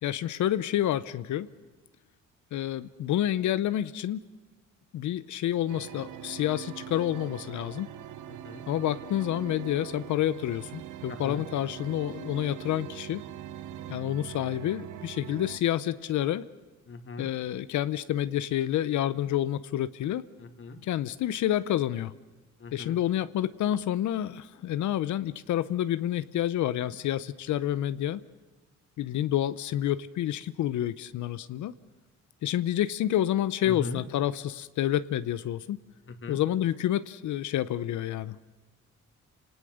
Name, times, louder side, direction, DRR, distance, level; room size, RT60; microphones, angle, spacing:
voice 1, 0.0-1.5 2.5-4.2 4.9-7.9 8.7-13.2 13.9-16.4 17.2-20.2 20.8-22.1 22.7-28.2 29.0-31.7 32.4-35.8 36.3-38.4, left 12 dB, 75° left, 15 dB, 0.8 m, -29 dB
sound 1, 5.7-15.6, right 11 dB, 85° right, 1.0 m, -42 dB
voice 2, 8.3-8.6 11.1-11.4 16.9-17.3 20.4-20.8 22.6-23.0 33.6-34.0 36.1-36.4, left 3 dB, 45° left, 6 dB, 2.6 m, -39 dB
28.5 x 19.0 x 6.5 m, 1.2 s
cardioid pair, 90°, 30 cm